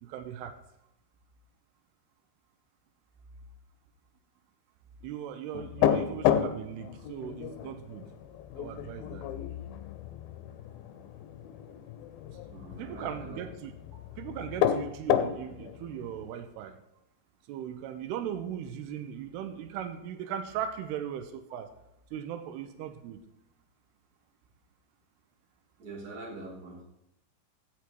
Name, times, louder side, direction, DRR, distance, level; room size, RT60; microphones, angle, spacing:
voice 1, 0.0-0.6 5.0-8.1 8.6-9.3 12.8-13.7 14.2-16.8 17.5-21.7 22.1-23.2, right 9 dB, 85° right, 9 dB, 2.7 m, -38 dB
sound 1, 5.5-16.3, left 10 dB, 80° left, 2.3 m, -32 dB
voice 2, 12.4-13.4 25.8-26.8, right 2 dB, 30° right, -2 dB, 2.5 m, -44 dB
16.0 x 6.2 x 4.5 m, 0.85 s
omnidirectional pair, 4.7 m